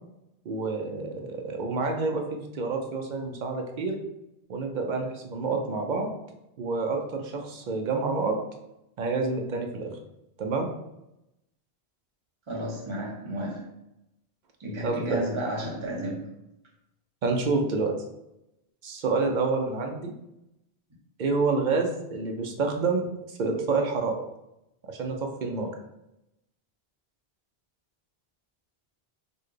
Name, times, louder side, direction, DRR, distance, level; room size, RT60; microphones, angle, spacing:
voice 1, 0.5-4.0 4.5-6.2 6.6-8.4 9.0-10.0 10.4-10.7 14.8-15.2 17.2-17.9 18.8-20.1 21.2-24.2 24.9-25.7, right 4 dB, 55° right, 3 dB, 0.5 m, -28 dB
voice 2, 12.5-13.7 14.6-16.2, right 1 dB, 30° right, -2 dB, 0.8 m, -32 dB
4.1 x 2.2 x 3.2 m, 0.87 s
omnidirectional pair, 1.1 m